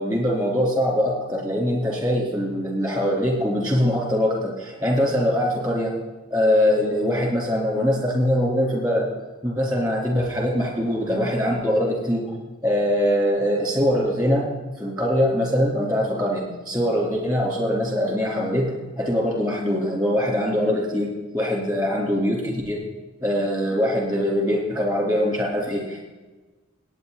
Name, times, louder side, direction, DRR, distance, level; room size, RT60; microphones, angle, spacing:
voice 1, 0.0-5.9 6.3-9.1 9.4-12.3 12.6-14.5 14.8-22.8 23.2-26.0, equal, 20° right, -1 dB, 3.7 m, -22 dB
17.5 x 9.5 x 4.2 m, 1.2 s
head